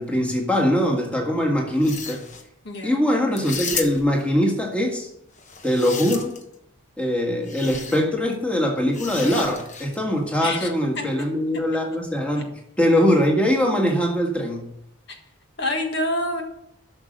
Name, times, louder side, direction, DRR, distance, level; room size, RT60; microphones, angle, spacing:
voice 1, 0.0-2.2 2.8-5.1 5.6-6.3 7.0-12.5 12.8-14.7, equal, 5° left, 0 dB, 1.7 m, -22 dB
sound 1, 1.7-2.4 3.3-4.2 5.4-6.5 7.5-8.0 8.9-10.0, left 5 dB, 35° left, 1.1 m, -33 dB
voice 2, 2.7-3.0 10.4-10.7 11.0-11.1 15.1-15.2 15.6-16.4, left 1 dB, 50° left, 3 dB, 1.7 m, -26 dB
12.0 x 6.5 x 6.5 m, 0.77 s
head